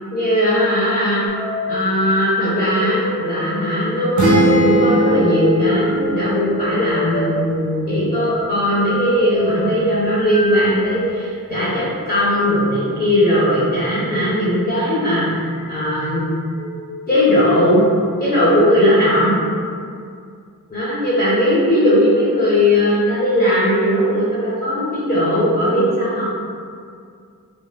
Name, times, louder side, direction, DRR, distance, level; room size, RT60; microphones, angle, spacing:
voice 1, 0.1-1.3 1.7-15.4 15.7-16.3 17.1-17.8 18.2-19.4 20.7-26.2, equal, 25° left, -10 dB, 0.8 m, -18 dB
sound 1, 1.3-11.2 12.0-12.3 14.3-14.6 15.4-15.9 16.4-16.7 17.5-18.0 18.5-19.6, left 2 dB, 85° left, 0.7 m, -27 dB
sound 2, 4.2-7.9, right 1 dB, 55° right, 0.7 m, -20 dB
2.5 x 2.3 x 3.2 m, 2.2 s
wide cardioid pair, 90°, 35 cm